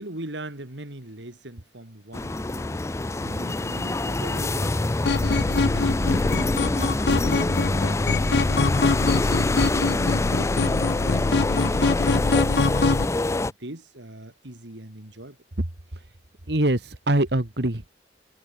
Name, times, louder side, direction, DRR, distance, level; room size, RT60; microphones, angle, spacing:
voice 1, 0.0-6.1 6.6-9.3 10.3-12.9 13.3-15.4, right 1 dB, 90° right, 3.5 m, -41 dB
sound 1, 2.1-13.5, left 2 dB, 15° left, 0.4 m, -26 dB
sound 2, 5.1-13.0, left 3 dB, 70° left, 0.7 m, -23 dB
voice 2, 16.5-17.9, right 1 dB, 70° right, 2.1 m, -24 dB
head